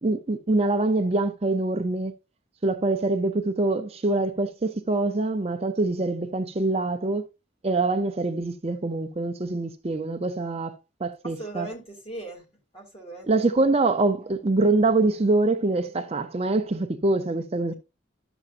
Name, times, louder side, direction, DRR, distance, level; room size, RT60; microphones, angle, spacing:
voice 1, 0.0-2.1 2.6-7.3 7.6-11.7 13.2-17.7, right 2 dB, 30° right, 0.6 m, -24 dB
voice 2, 11.4-12.4 12.7-13.3, right 2 dB, 30° left, 2.6 m, -38 dB
11.5 x 7.1 x 2.5 m
head